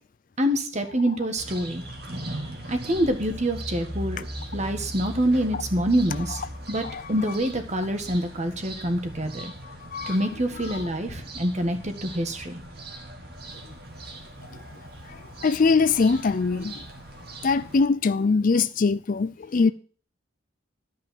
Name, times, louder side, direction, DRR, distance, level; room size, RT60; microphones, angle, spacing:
voice 1, 0.4-1.8 2.7-4.2 4.5-6.4 6.7-9.5 10.1-12.6, right 1 dB, 35° right, 1.6 m, -26 dB
sound 1, 1.4-17.9, right 1 dB, 55° right, 2.1 m, -39 dB
voice 2, 15.4-16.7 17.4-19.7, left 4 dB, 45° left, 0.4 m, -22 dB
12.5 x 5.6 x 7.4 m
head